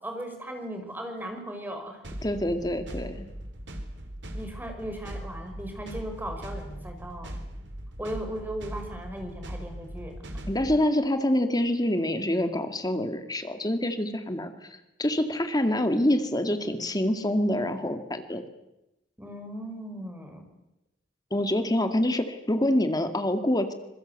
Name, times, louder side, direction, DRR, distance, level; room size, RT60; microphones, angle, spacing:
voice 1, 0.0-2.0 4.3-7.4 8.0-10.2 19.2-20.4, right 1 dB, 10° right, 4 dB, 5.3 m, -37 dB
sound 1, 2.0-10.8, equal, 80° right, 3.7 m, -39 dB
voice 2, 2.2-3.3 10.5-14.5 15.0-18.4 21.3-23.7, left 1 dB, 20° left, 7 dB, 2.2 m, -26 dB
26.0 x 22.5 x 8.2 m, 0.91 s
head